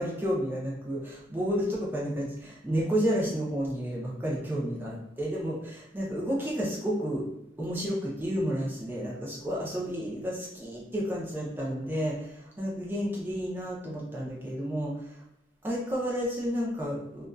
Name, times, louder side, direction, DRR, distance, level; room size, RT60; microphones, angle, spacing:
voice 1, 0.0-7.2 7.6-15.0 15.6-17.3, equal, 10° right, -5 dB, 0.6 m, -31 dB
2.6 x 2.3 x 2.3 m, 0.85 s
head